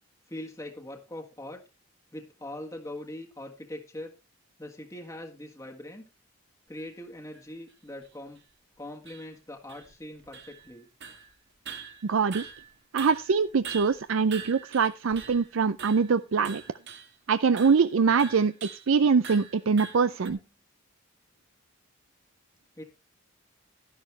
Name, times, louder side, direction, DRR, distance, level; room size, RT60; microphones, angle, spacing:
voice 1, 0.3-1.6 2.1-4.1 4.6-6.0 6.7-8.4 8.8-10.9 22.8-22.9, left 1 dB, 15° left, 1 dB, 1.5 m, -41 dB
sound 1, 6.8-6.9 7.3-7.4 8.0-8.1 8.4-8.5 9.1-9.3 9.7-10.8 11.0-11.3 11.7-12.7 13.0-15.5 15.8-16.1 16.4-17.1 17.6-17.9 18.2-18.9 19.2-20.3, right 6 dB, 50° right, 1.6 m, -43 dB
voice 2, 12.0-12.5 12.9-16.6 17.3-18.5 18.9-20.4, right 5 dB, 65° right, 13 dB, 0.5 m, -23 dB
12.5 x 11.0 x 3.2 m, 0.27 s
head